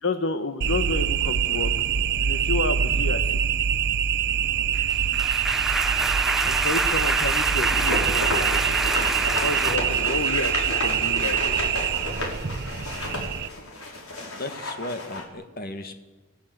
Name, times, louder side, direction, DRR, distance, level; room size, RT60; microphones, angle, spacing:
voice 1, 0.0-1.7 2.2-3.2 6.4-8.3 9.4-11.3, left 2 dB, 60° left, 8 dB, 1.2 m, -30 dB
sound 1, 0.6-13.5, right 9 dB, 50° right, 0.6 m, -24 dB
sound 2, 4.7-9.8, right 1 dB, ahead, 0.8 m, -27 dB
sound 3, 7.7-15.2, left 2 dB, 80° left, 5.2 m, -32 dB
voice 2, 14.2-16.0, left 2 dB, 45° left, 7 dB, 2.1 m, -35 dB
25.5 x 16.5 x 8.0 m, 1.2 s
head